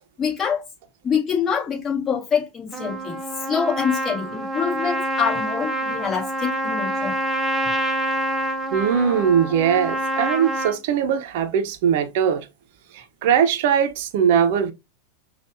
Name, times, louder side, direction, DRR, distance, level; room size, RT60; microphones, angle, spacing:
voice 1, 0.2-0.6 1.0-3.2 3.5-7.2, left 7 dB, 25° left, 1.9 m, -25 dB
Trumpet, 2.7-10.8, right 1 dB, 5° right, 0.9 m, -26 dB
voice 2, 8.7-12.4 12.9-14.7, right 8 dB, 60° right, 0.8 m, -20 dB
5.4 x 2.5 x 2.6 m
hypercardioid pair, 100°, 0 cm